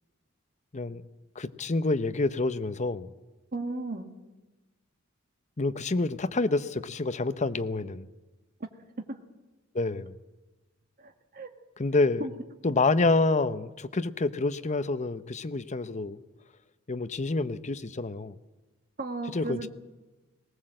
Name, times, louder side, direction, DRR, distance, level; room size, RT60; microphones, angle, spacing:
voice 1, 1.4-3.1 5.6-8.1 9.7-10.1 11.8-12.3 12.6-16.2 16.9-18.4 19.3-19.7, left 3 dB, 35° left, 12 dB, 0.8 m, -28 dB
voice 2, 3.5-4.1 9.0-9.1 11.0-11.5 12.2-12.3 19.0-19.7, right 2 dB, 45° right, 5 dB, 1.7 m, -35 dB
19.0 x 19.0 x 7.7 m, 1.2 s
head